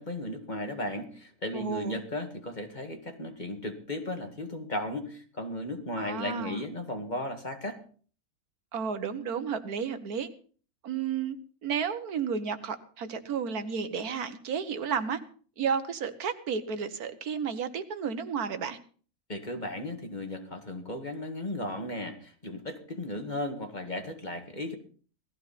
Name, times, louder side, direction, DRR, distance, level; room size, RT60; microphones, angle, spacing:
voice 1, 0.0-7.8 19.3-24.8, left 1 dB, 30° left, 5 dB, 2.1 m, -35 dB
voice 2, 1.5-2.0 6.0-6.6 8.7-10.3 10.8-11.4 11.6-15.2 15.6-18.8, right 6 dB, 85° right, 10 dB, 1.7 m, -32 dB
18.0 x 14.0 x 4.2 m, 0.43 s
omnidirectional pair, 1.5 m